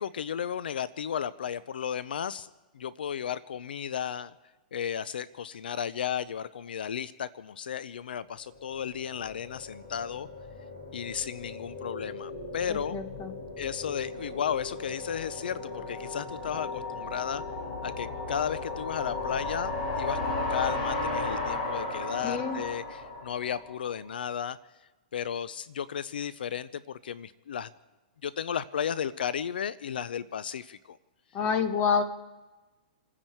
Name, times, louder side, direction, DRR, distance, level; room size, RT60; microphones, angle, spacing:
voice 1, 0.0-2.5 2.7-4.3 4.7-10.3 10.9-13.0 13.6-17.4 17.8-24.6 25.1-27.7 28.2-31.0, left 8 dB, 80° left, 17 dB, 0.6 m, -34 dB
sound 1, 8.6-23.8, left 3 dB, 45° left, 5.7 m, -35 dB
voice 2, 12.7-13.3 22.2-22.6 31.3-32.0, left 6 dB, 25° left, 8 dB, 1.4 m, -28 dB
29.0 x 10.0 x 4.6 m, 1.2 s
hypercardioid pair, 155°, 5 cm